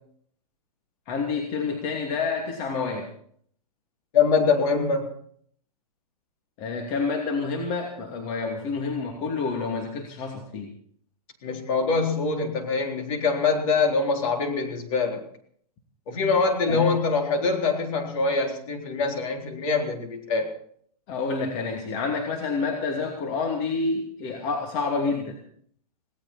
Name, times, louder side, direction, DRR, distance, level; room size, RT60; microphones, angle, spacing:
voice 1, 1.1-3.1 6.6-10.7 16.7-16.9 21.1-25.4, left 4 dB, 40° left, 1 dB, 2.7 m, -28 dB
voice 2, 4.1-5.1 11.4-15.2 16.1-20.5, left 4 dB, 55° left, 2 dB, 4.0 m, -24 dB
18.0 x 18.0 x 4.4 m, 0.63 s
hypercardioid pair, 130°, 20 cm